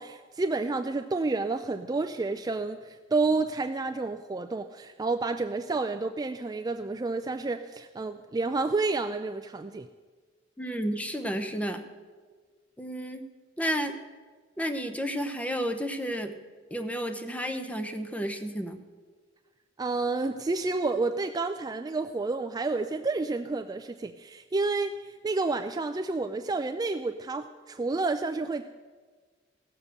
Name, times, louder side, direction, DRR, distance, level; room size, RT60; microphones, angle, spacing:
voice 1, 0.0-9.9 19.8-28.6, right 3 dB, 20° right, 7 dB, 0.3 m, -30 dB
voice 2, 10.6-11.9 12.8-13.2 13.6-14.0 14.6-16.4 16.7-18.8, equal, 10° left, 8 dB, 0.8 m, -31 dB
16.5 x 7.2 x 6.5 m, 1.5 s
head